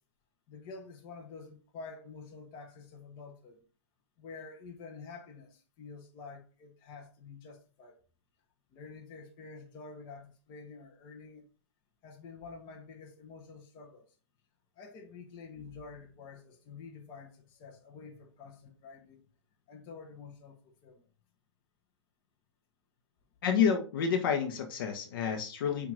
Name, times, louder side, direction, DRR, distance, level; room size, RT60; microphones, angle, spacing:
voice 1, 0.5-3.6 4.2-8.0 8.7-11.5 12.0-14.0 14.8-19.2 19.7-21.0, left 4 dB, 30° left, 1.2 m, -48 dB
voice 2, 23.4-25.9, left 7 dB, 50° left, 1.2 m, -29 dB
8.6 x 2.9 x 4.1 m
figure-of-eight pair, 115°, 15 cm